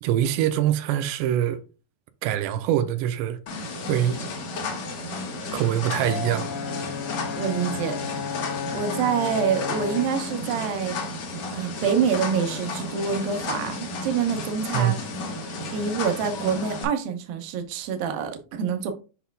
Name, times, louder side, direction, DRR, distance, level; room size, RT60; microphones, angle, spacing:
voice 1, 0.0-1.6 2.2-3.4 3.9-4.2 5.5-6.5 14.7-15.0, right 11 dB, 90° right, 2.8 m, -24 dB
sound 1, 3.5-16.8, left 2 dB, 60° left, 1.9 m, -33 dB
Brass instrument, 6.0-10.2, left 7 dB, 85° left, 2.2 m, -33 dB
voice 2, 7.4-8.2 8.7-11.0 11.5-14.9 15.7-18.9, right 7 dB, 70° right, 2.4 m, -26 dB
8.0 x 5.6 x 2.3 m
omnidirectional pair, 5.0 m